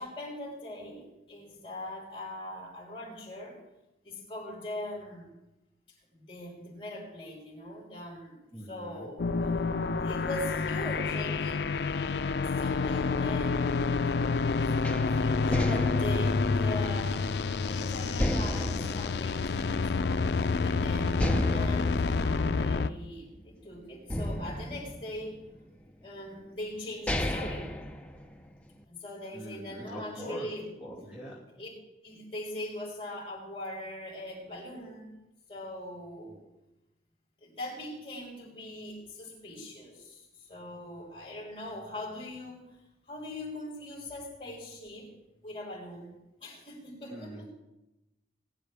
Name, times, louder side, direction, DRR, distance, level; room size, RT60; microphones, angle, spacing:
voice 1, 0.0-3.6 4.0-5.3 6.1-9.7 10.0-11.7 12.4-13.7 14.7-17.3 17.6-19.8 20.6-25.4 26.0-27.7 28.9-30.7 31.6-31.7 32.0-35.2 35.5-36.4 37.4-42.8 43.1-45.1 45.4-46.2 46.4-47.5, left 1 dB, 30° left, -3 dB, 5.2 m, -41 dB
voice 2, 8.5-9.1 29.3-30.5 30.8-31.4 36.3-36.4 47.1-47.5, equal, 10° right, -5 dB, 2.7 m, -42 dB
sound 1, 9.2-22.9, left 4 dB, 65° left, 0.4 m, -28 dB
sound 2, 14.8-17.7 18.2-20.1 20.5-20.6 21.2-23.5 24.1-25.7 26.4-26.5 26.9-28.7, left 1 dB, 5° left, 0.7 m, -33 dB
20.5 x 11.0 x 3.4 m, 0.94 s
head